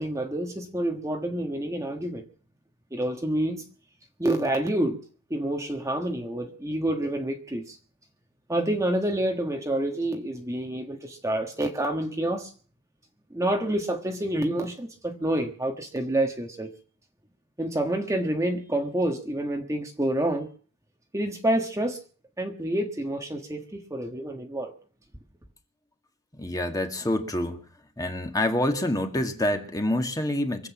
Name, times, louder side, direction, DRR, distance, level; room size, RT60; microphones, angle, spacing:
voice 1, 0.0-2.3 2.9-3.7 4.2-5.0 5.3-7.8 8.5-12.5 13.3-16.7 17.6-20.5 21.1-22.0 22.4-24.7, right 1 dB, 15° right, 1.4 m, -28 dB
voice 2, 26.4-27.6 28.0-30.7, left 1 dB, 15° left, 1.9 m, -27 dB
24.0 x 8.2 x 7.2 m
head